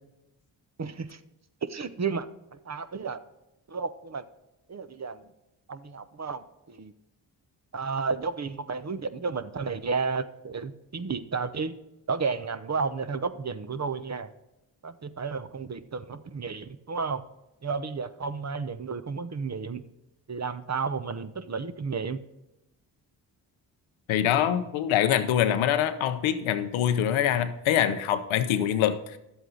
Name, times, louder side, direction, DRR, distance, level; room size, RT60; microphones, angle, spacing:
voice 1, 0.8-1.2 1.7-2.3 2.7-3.2 3.7-4.2 4.7-5.2 5.7-6.9 7.7-11.7 12.1-14.3 14.8-17.2 17.6-19.8 20.3-22.2, right 5 dB, 35° right, 12 dB, 0.9 m, -32 dB
voice 2, 24.1-29.2, left 10 dB, 85° left, 10 dB, 0.8 m, -24 dB
11.0 x 8.0 x 3.9 m, 0.93 s
supercardioid pair, 40°, 47 cm